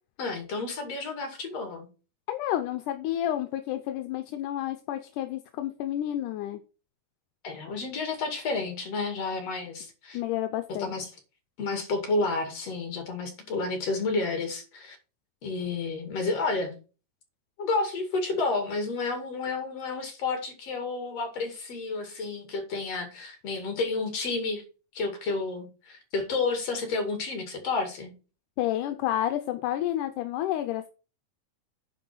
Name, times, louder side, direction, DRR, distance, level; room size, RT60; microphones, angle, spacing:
voice 1, 0.2-1.9 7.4-10.2 10.8-11.1 11.6-15.0 15.4-16.8 17.6-24.6 24.9-28.1, left 3 dB, 55° left, 5 dB, 3.3 m, -30 dB
voice 2, 2.3-6.6 10.1-10.9 28.6-30.9, left 12 dB, 80° left, 8 dB, 2.2 m, -30 dB
10.0 x 4.6 x 6.1 m, 0.34 s
omnidirectional pair, 3.7 m